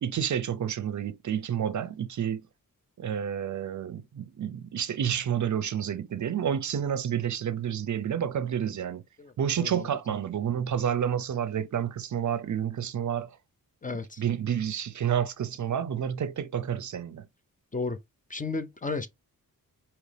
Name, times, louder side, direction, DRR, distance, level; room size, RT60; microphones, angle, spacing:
voice 1, 0.0-2.4 3.0-9.0 9.4-13.3 14.2-17.2, right 9 dB, 55° right, 0.5 m, -29 dB
voice 2, 9.2-9.9 13.8-14.2 17.7-18.0 18.3-19.1, left 3 dB, 25° left, 0.5 m, -33 dB
5.0 x 2.9 x 3.3 m
wide cardioid pair, 100°, 35 cm